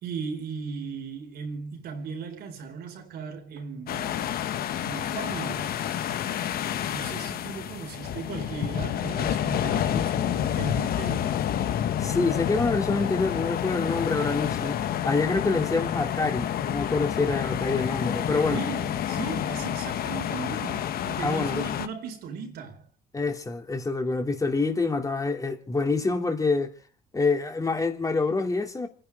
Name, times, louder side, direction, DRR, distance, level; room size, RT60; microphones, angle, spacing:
voice 1, 0.0-4.2 4.8-5.8 6.9-11.4 18.5-22.8, right 5 dB, 70° right, 4.2 m, -37 dB
sound 1, 3.9-21.9, left 10 dB, 65° left, 1.2 m, -29 dB
voice 2, 12.0-18.6 21.2-21.8 23.1-26.7 27.1-28.9, left 3 dB, 20° left, 2.9 m, -26 dB
28.5 x 10.5 x 4.8 m
cardioid pair, 110°, 17 cm